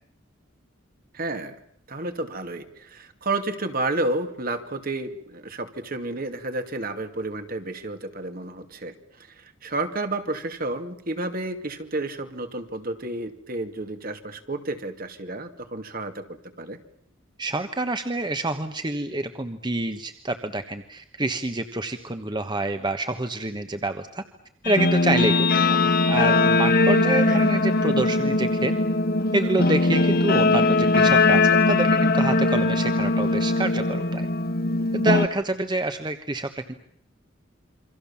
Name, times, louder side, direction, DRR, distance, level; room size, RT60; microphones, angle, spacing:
voice 1, 1.1-1.6 1.9-16.2 16.6-16.8 27.3-27.5, right 2 dB, 45° right, 7 dB, 2.5 m, -31 dB
voice 2, 17.4-24.2 24.6-25.3 25.8-28.7 29.3-34.2 34.9-36.7, right 2 dB, 20° right, 8 dB, 1.3 m, -27 dB
Guitar, 24.6-35.3, left 2 dB, 50° left, 1.4 m, -20 dB
28.5 x 24.5 x 7.2 m, 0.65 s
head